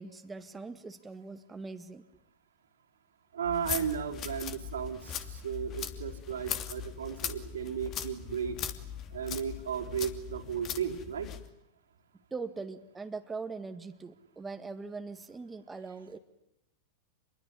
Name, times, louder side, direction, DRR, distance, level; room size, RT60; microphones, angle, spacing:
voice 1, 0.0-2.0 12.3-16.2, right 4 dB, 15° right, 6 dB, 1.8 m, -41 dB
voice 2, 3.3-8.6 9.1-11.3, right 7 dB, 80° right, 3 dB, 3.7 m, -35 dB
sound 1, 3.4-11.5, left 9 dB, 40° left, 2.7 m, -40 dB
26.5 x 22.5 x 9.8 m, 0.81 s
hypercardioid pair, 95°, 0 cm